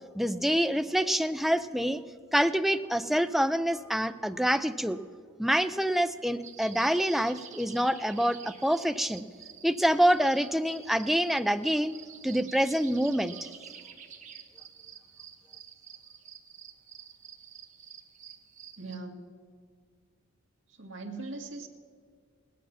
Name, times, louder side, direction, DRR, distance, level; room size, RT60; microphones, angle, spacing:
voice 1, 0.1-2.0 2.3-5.0 5.4-9.3 9.6-11.9 12.2-13.4, equal, ahead, 10 dB, 0.4 m, -26 dB
sound 1, 6.4-19.0, right 8 dB, 35° right, 1.1 m, -49 dB
voice 2, 18.8-19.3 20.7-21.7, right 3 dB, 65° right, 3 dB, 1.7 m, -40 dB
18.5 x 9.4 x 5.7 m, 2.1 s
head